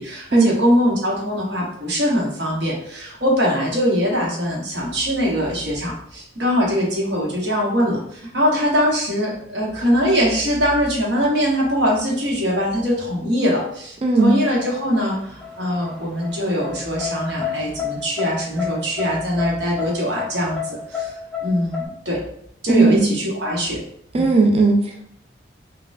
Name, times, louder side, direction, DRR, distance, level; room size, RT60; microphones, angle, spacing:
voice 1, 0.0-21.1 21.4-22.2 22.6-23.8 24.1-24.3, equal, 65° right, -3 dB, 1.0 m, -22 dB
voice 2, 14.0-14.4 22.7-23.1 24.1-25.0, right 3 dB, 30° right, 2 dB, 0.3 m, -16 dB
sound 1, 14.2-21.9, left 7 dB, 5° left, 0.7 m, -30 dB
4.1 x 2.2 x 2.5 m, 0.70 s
head